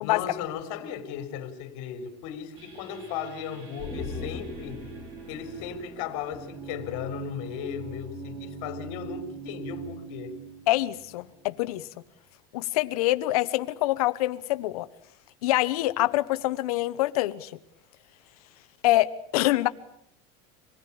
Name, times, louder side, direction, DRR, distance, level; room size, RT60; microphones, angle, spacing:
voice 1, 0.0-4.8 5.3-10.4, left 8 dB, 55° left, 3.8 m, -36 dB
sound 1, 2.6-11.9, right 4 dB, 30° right, 4.7 m, -43 dB
sound 2, 3.8-7.2 7.5-7.6, left 3 dB, 5° right, 3.0 m, -40 dB
voice 2, 10.7-11.9 12.5-14.9 15.4-17.5 18.8-19.7, left 17 dB, 85° left, 1.1 m, -25 dB
26.0 x 19.0 x 8.7 m
cardioid pair, 180°, 19 cm